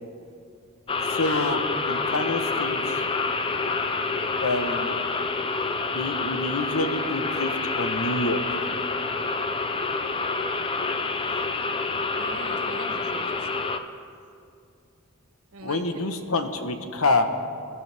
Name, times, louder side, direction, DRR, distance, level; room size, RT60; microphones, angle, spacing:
sound 1, 0.9-13.8, left 4 dB, 25° left, 0.5 m, -28 dB
voice 1, 1.0-3.1 4.4-5.0 5.9-8.4 15.6-17.3, left 2 dB, 70° left, 7 dB, 1.1 m, -27 dB
voice 2, 12.2-13.5 15.5-16.3, right 2 dB, 80° right, 5 dB, 1.3 m, -41 dB
22.5 x 14.0 x 3.5 m, 2.5 s
head